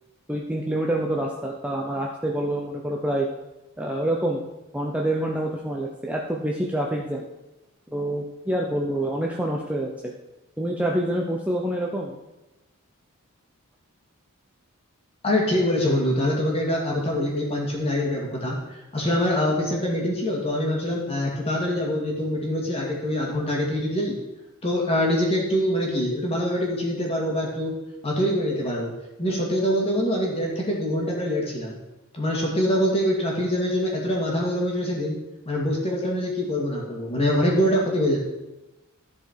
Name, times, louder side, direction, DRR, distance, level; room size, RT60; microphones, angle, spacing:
voice 1, 0.3-3.3 3.8-4.4 4.7-7.2 7.9-10.1 10.6-12.2, right 1 dB, 5° right, -1 dB, 0.7 m, -27 dB
voice 2, 15.2-18.6 18.9-24.2 24.6-27.7 28.0-28.9 29.2-31.8 32.1-35.2 35.5-38.2, equal, 25° left, -2 dB, 2.3 m, -24 dB
13.5 x 4.9 x 4.6 m, 0.99 s
head